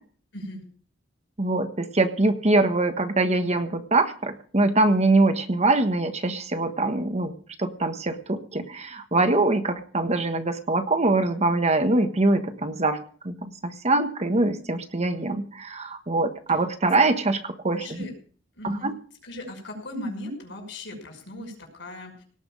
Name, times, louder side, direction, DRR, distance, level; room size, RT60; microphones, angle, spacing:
voice 1, 1.4-7.3 7.6-13.0 13.2-18.0 18.6-18.9, right 2 dB, 35° right, 8 dB, 1.4 m, -23 dB
voice 2, 17.7-18.1 18.6-18.9 19.2-22.2, left 1 dB, 65° left, 3 dB, 5.7 m, -37 dB
18.0 x 6.1 x 8.8 m, 0.43 s
head